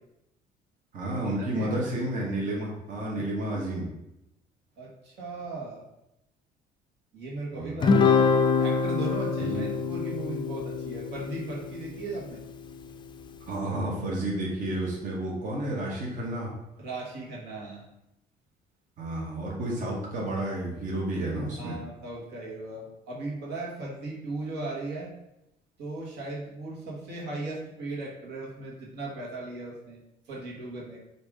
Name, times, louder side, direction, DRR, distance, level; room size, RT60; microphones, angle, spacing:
voice 1, 0.9-3.9 7.5-7.8 9.4-9.7 13.5-16.5 19.0-21.8, right 1 dB, 50° right, -3 dB, 1.1 m, -31 dB
voice 2, 4.8-5.8 7.1-8.3 8.6-12.4 16.8-17.8 21.6-25.1 25.8-30.0 30.3-31.0, right 2 dB, 85° right, -3 dB, 1.3 m, -37 dB
Guitar, 7.8-12.4, left 5 dB, 30° left, 0.3 m, -25 dB
4.9 x 2.7 x 3.6 m, 0.86 s
cardioid pair, 110°, 17 cm